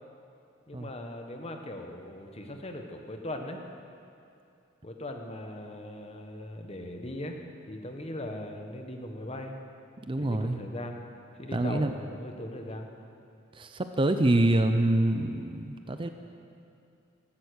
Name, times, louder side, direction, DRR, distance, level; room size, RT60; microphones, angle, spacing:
voice 1, 0.7-3.6 4.8-7.4 7.7-9.6 10.2-11.0 11.4-12.9, left 1 dB, 30° left, 4 dB, 1.3 m, -39 dB
voice 2, 10.1-10.6 11.5-11.9 13.5-16.1, right 1 dB, 25° right, 7 dB, 0.5 m, -26 dB
15.5 x 13.0 x 6.4 m, 2.5 s
head